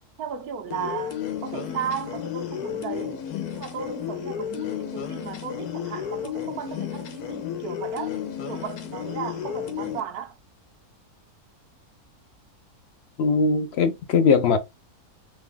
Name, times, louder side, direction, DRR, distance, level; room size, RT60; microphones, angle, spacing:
voice 1, 0.2-8.2 8.5-10.4, right 8 dB, 85° right, 1.3 m, -35 dB
sound 1, 0.7-10.0, left 9 dB, 85° left, 1.2 m, -32 dB
voice 2, 13.2-14.6, left 5 dB, 65° left, 0.6 m, -20 dB
3.2 x 2.2 x 3.5 m
omnidirectional pair, 1.6 m